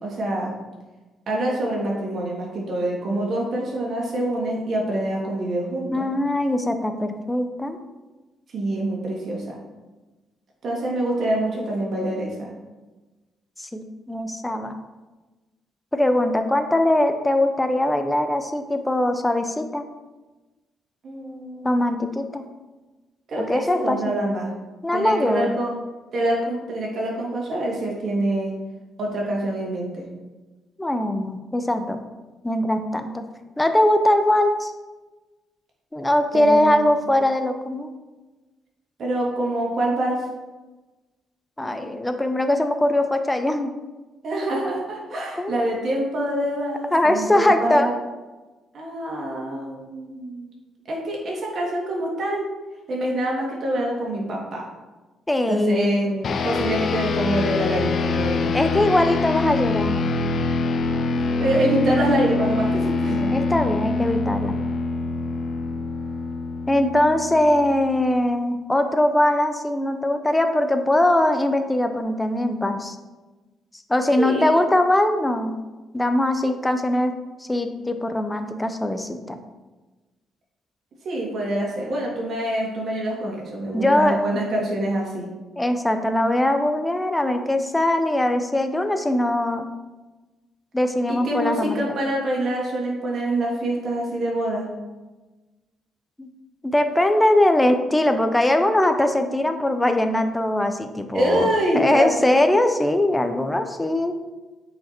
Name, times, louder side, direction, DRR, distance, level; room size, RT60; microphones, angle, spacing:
voice 1, 0.0-0.5 1.3-6.1 8.5-9.6 10.6-12.5 21.0-21.8 23.3-24.5 24.9-25.8 26.1-28.5 29.0-30.1 36.3-36.9 39.0-40.2 44.2-47.9 48.7-50.5 50.9-52.4 52.9-54.7 55.5-56.1 56.4-58.7 61.4-63.3 74.2-74.5 81.0-85.3 91.1-94.7 101.1-102.4, right 1 dB, 55° right, -2 dB, 2.6 m, -25 dB
voice 2, 5.9-7.8 13.6-14.8 15.9-19.8 21.6-22.4 23.4-24.1 24.8-25.6 30.8-32.0 32.4-33.3 33.6-34.7 35.9-37.9 41.6-43.7 45.4-45.6 46.9-47.9 55.3-56.4 58.5-60.1 63.3-64.6 66.7-73.0 73.9-75.6 75.9-77.1 77.4-79.4 83.7-84.3 85.6-89.7 90.7-91.8 96.2-96.3 96.6-104.1, left 1 dB, 10° left, 7 dB, 0.8 m, -21 dB
sound 1, 56.2-67.9, left 3 dB, 55° left, 0.7 m, -25 dB
8.8 x 5.3 x 4.4 m, 1.2 s
cardioid pair, 90°, 0 cm